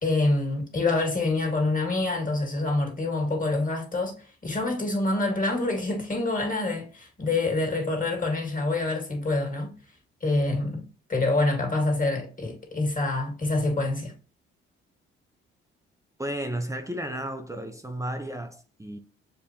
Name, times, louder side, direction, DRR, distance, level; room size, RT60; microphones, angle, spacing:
voice 1, 0.0-4.2 4.4-9.7 10.2-10.8 11.1-14.1, left 2 dB, 30° left, 2.0 m, -26 dB
voice 2, 16.2-19.0, right 1 dB, 10° right, 0.7 m, -33 dB
6.6 x 2.5 x 2.9 m
hypercardioid pair, 45°, 29 cm